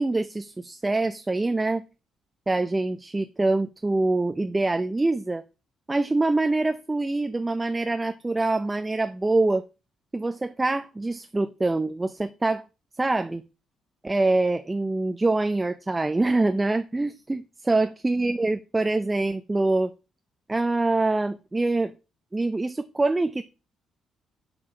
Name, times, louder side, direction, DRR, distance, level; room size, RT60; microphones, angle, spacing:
voice 1, 0.0-1.8 2.5-5.4 5.9-9.6 10.1-12.6 13.0-13.4 14.0-19.9 20.5-21.9 22.3-23.4, right 2 dB, 15° right, 10 dB, 0.5 m, -25 dB
7.4 x 4.5 x 5.2 m, 0.31 s
cardioid pair, 90°, 0 cm